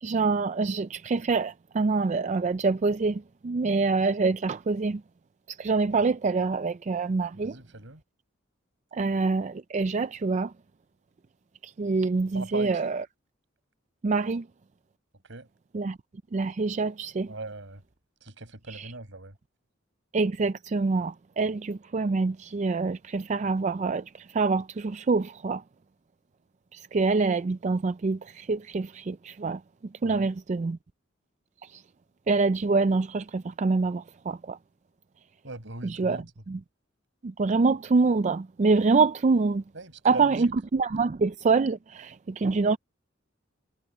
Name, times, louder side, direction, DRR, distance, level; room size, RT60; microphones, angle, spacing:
voice 1, 0.0-5.0 5.5-7.5 8.9-10.5 11.6-12.9 14.0-14.4 15.7-16.0 16.3-17.3 20.1-25.6 26.7-29.6 30.0-30.8 31.7-31.8 32.3-34.6 36.0-36.2 36.5-36.6 37.2-39.6 40.0-42.8, right 4 dB, 35° right, 0.4 m, -26 dB
voice 2, 7.3-8.0 12.3-12.9 15.2-15.5 17.3-17.8 18.2-19.4 30.0-30.3 35.4-36.3 39.7-40.5, right 2 dB, 65° right, 5.4 m, -40 dB
head